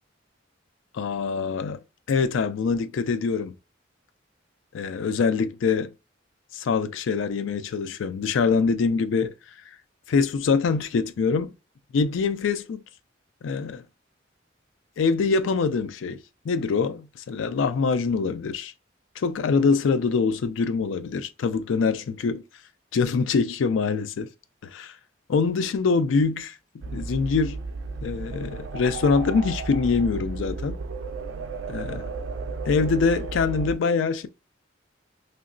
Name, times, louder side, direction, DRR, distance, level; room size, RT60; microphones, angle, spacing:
voice 1, 0.9-3.5 4.7-5.9 6.5-9.3 10.1-11.5 11.9-12.8 13.4-13.8 15.0-16.2 16.5-18.7 19.2-22.4 22.9-24.3 24.7-24.9 25.3-26.5 26.9-27.6 28.0-30.8 31.7-32.1 32.7-34.3, left 5 dB, 80° left, 0.4 m, -24 dB
sound 1, 26.8-33.8, right 3 dB, 80° right, 0.4 m, -33 dB
3.1 x 2.8 x 2.5 m
head